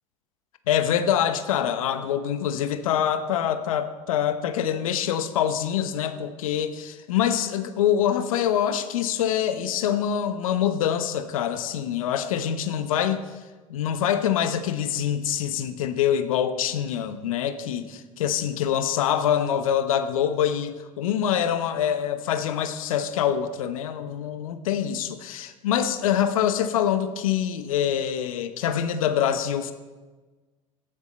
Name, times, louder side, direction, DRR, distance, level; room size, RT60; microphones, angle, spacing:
voice 1, 0.7-13.2 13.7-29.7, left 9 dB, 80° left, 10 dB, 0.9 m, -25 dB
14.5 x 10.0 x 4.4 m, 1.3 s
hypercardioid pair, 75°, 17 cm